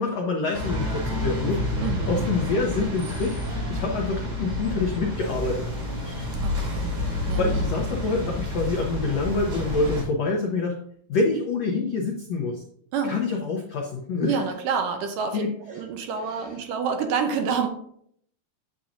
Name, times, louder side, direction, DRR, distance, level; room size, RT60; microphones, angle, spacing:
voice 1, 0.0-1.6 2.1-3.4 3.7-5.7 6.0-6.3 6.8-10.8 11.1-12.6 13.0-14.4 15.3-15.5 16.3-16.4, left 3 dB, 90° left, 1 dB, 1.4 m, -26 dB
sound 1, 0.5-10.0, left 1 dB, 50° right, 3.9 m, -29 dB
voice 2, 1.8-2.3 6.4-6.9 7.3-7.4 12.9-13.2 14.2-17.7, right 6 dB, 75° right, 5 dB, 2.2 m, -28 dB
9.2 x 7.2 x 2.5 m, 0.65 s
omnidirectional pair, 4.3 m